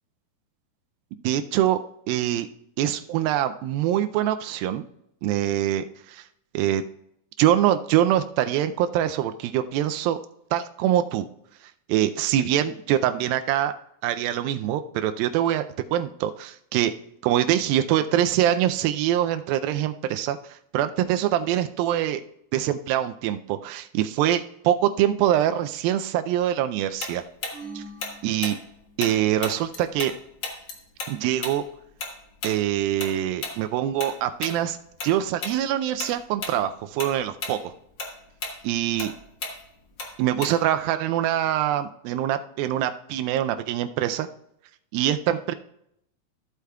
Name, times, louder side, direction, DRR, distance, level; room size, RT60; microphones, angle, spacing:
voice 1, 1.2-1.8 2.1-2.5 2.8-4.8 5.2-6.2 6.5-6.8 7.4-10.2 10.5-11.3 11.9-13.7 14.0-16.9 17.2-22.2 22.5-27.2 27.8-27.9 28.2-28.6 29.0-30.1 31.1-31.7 32.4-34.8 35.0-37.6 38.6-39.1 40.2-44.3 44.9-45.5, right 11 dB, 85° right, 10 dB, 2.3 m, -24 dB
Tick-tock, 27.0-30.1 30.4-35.1 35.4-35.6 36.0-36.6 36.9-40.8, left 3 dB, 70° left, 1.0 m, -34 dB
sound 1, 27.5-29.2, right 3 dB, 45° left, 3.9 m, -43 dB
15.0 x 8.1 x 2.3 m, 0.77 s
omnidirectional pair, 4.2 m